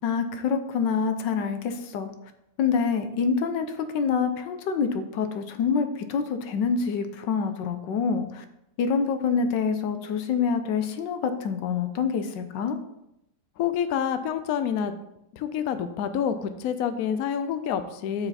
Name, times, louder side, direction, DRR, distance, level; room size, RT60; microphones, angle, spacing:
voice 1, 0.0-2.1 2.6-8.4 8.8-12.8, left 6 dB, 90° left, 8 dB, 1.5 m, -26 dB
voice 2, 13.6-14.9 15.3-18.3, left 8 dB, 65° left, 10 dB, 1.0 m, -27 dB
7.5 x 6.4 x 4.1 m, 0.83 s
omnidirectional pair, 1.9 m